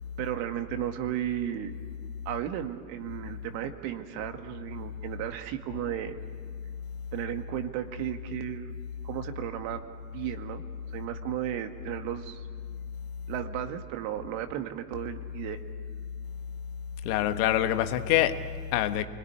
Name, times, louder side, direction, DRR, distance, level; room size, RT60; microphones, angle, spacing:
voice 1, 0.2-1.7 2.3-6.2 7.1-8.7 9.0-9.8 10.1-10.6 10.9-12.5 13.3-15.6, right 12 dB, 65° right, 2.2 m, -34 dB
voice 2, 17.0-19.0, left 12 dB, 70° left, 1.6 m, -26 dB
28.0 x 21.0 x 9.6 m
hypercardioid pair, 90°, 47 cm